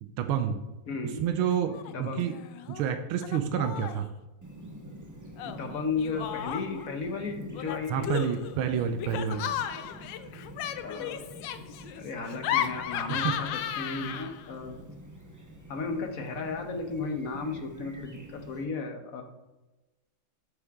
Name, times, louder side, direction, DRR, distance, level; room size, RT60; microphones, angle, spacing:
voice 1, 0.0-0.6 1.2-2.4 2.7-4.1 7.9-9.5 13.1-13.4, right 8 dB, 85° right, 7 dB, 1.5 m, -29 dB
voice 2, 0.9-1.2 1.9-2.3 5.4-8.1 10.8-14.8 15.7-19.2, left 4 dB, 50° left, 5 dB, 1.1 m, -35 dB
Laughter, 1.5-1.9 2.2-2.8 3.2-4.1 5.4-6.9 7.5-14.5, left 10 dB, 70° left, 1.2 m, -35 dB
Chirp tweet, 4.4-18.6, right 1 dB, 20° right, 0.5 m, -47 dB
8.2 x 8.0 x 3.6 m, 1.1 s
omnidirectional pair, 2.3 m